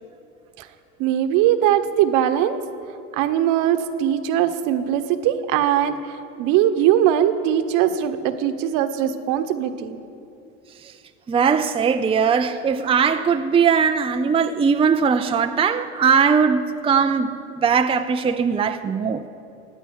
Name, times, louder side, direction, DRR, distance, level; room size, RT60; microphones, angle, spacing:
voice 1, 1.0-2.6 3.1-6.0 6.4-10.0, right 10 dB, 65° right, 1.2 m, -20 dB
voice 2, 11.3-19.2, right 6 dB, 15° right, 0.6 m, -20 dB
15.0 x 9.0 x 9.4 m
supercardioid pair, 105°, 34 cm